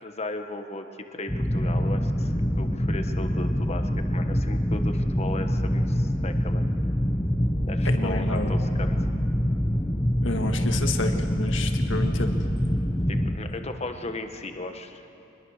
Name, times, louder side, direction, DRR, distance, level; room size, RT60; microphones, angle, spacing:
voice 1, 0.0-6.7 7.7-9.0 13.1-15.1, left 2 dB, 35° left, 6 dB, 1.3 m, -36 dB
sound 1, 1.3-13.4, equal, 15° left, 1.1 m, -25 dB
voice 2, 7.8-8.5 10.2-12.4, left 2 dB, 80° left, 5 dB, 1.8 m, -30 dB
24.5 x 20.5 x 6.6 m, 3.0 s
head